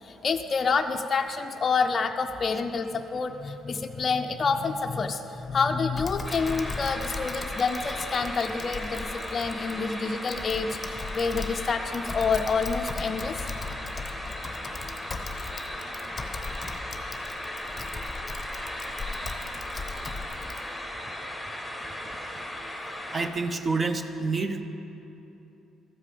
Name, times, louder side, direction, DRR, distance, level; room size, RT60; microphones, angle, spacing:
voice 1, 0.0-13.4, left 5 dB, 40° left, 5 dB, 0.5 m, -28 dB
Typing, 6.0-20.6, left 3 dB, 20° left, 0.8 m, -38 dB
sound 1, 6.2-23.3, left 1 dB, ahead, 1.4 m, -37 dB
voice 2, 23.1-24.6, right 3 dB, 25° right, 9 dB, 0.6 m, -28 dB
13.0 x 4.9 x 7.5 m, 2.9 s
cardioid pair, 95°, 0 cm